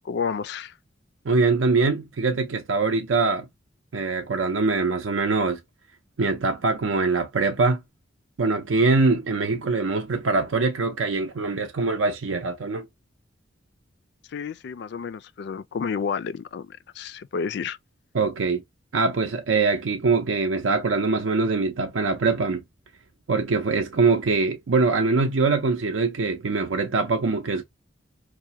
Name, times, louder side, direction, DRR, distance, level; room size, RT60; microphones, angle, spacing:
voice 1, 0.1-0.7 14.3-17.8, left 6 dB, 60° left, 0.3 m, -30 dB
voice 2, 1.2-3.5 3.9-5.6 6.2-7.8 8.4-12.9 18.1-18.6 18.9-22.6 23.3-27.6, right 3 dB, 90° right, 0.5 m, -23 dB
4.8 x 2.1 x 2.8 m
head